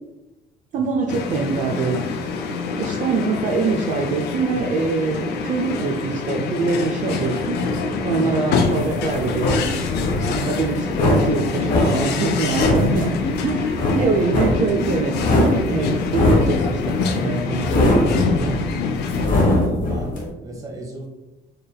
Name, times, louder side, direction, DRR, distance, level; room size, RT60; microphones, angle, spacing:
voice 1, 0.7-2.1 2.8-7.6 8.0-9.7 10.3-13.1 13.4-17.7 18.0-18.6, right 4 dB, 50° right, 0 dB, 0.5 m, -24 dB
sound 1, 1.1-19.3, left 5 dB, 75° left, 0.5 m, -25 dB
sound 2, 8.5-20.2, left 1 dB, 50° left, 1.1 m, -21 dB
voice 2, 12.6-13.5 14.0-14.5 19.4-21.1, right 1 dB, 20° right, -1 dB, 1.0 m, -35 dB
4.6 x 3.3 x 2.2 m, 1.0 s
cardioid pair, 110°, 17 cm